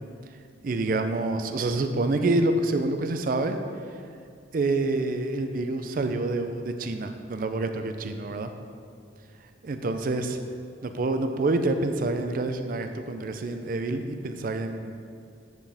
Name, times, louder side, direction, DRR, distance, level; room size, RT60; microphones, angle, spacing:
voice 1, 0.6-3.6 4.5-8.5 9.6-10.4 10.8-15.0, right 2 dB, 50° right, 7 dB, 0.4 m, -27 dB
7.8 x 4.8 x 3.4 m, 2.3 s
head